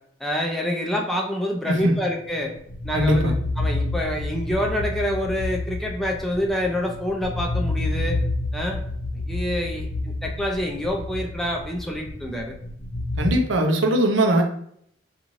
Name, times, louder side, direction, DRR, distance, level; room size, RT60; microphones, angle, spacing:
voice 1, 0.2-2.5 2.8-8.2 8.5-8.8 9.3-9.9 10.2-12.5, left 1 dB, ahead, 0 dB, 0.4 m, -27 dB
voice 2, 1.7-2.0 2.9-3.3 13.2-14.4, right 1 dB, 90° right, 4 dB, 0.5 m, -20 dB
sound 1, 2.2-13.3, left 2 dB, 90° left, 0.6 m, -29 dB
2.6 x 2.4 x 3.0 m, 0.67 s
head